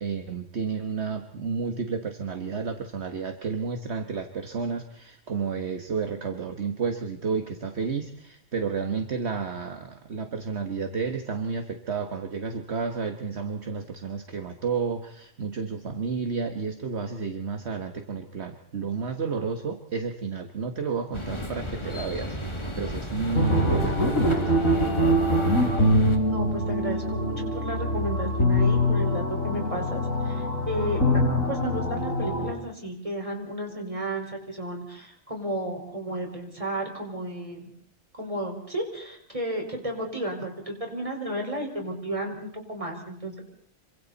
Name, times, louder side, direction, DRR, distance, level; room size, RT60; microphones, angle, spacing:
voice 1, 0.0-24.6, right 5 dB, 55° right, 6 dB, 1.7 m, -31 dB
sound 1, 21.1-26.2, equal, 20° left, 2.3 m, -34 dB
sound 2, 23.3-32.5, equal, 85° left, 4.6 m, -24 dB
voice 2, 26.2-31.0 31.5-37.7 38.1-43.4, right 1 dB, 25° right, 1 dB, 4.9 m, -33 dB
27.0 x 25.5 x 4.1 m, 0.67 s
omnidirectional pair, 1.3 m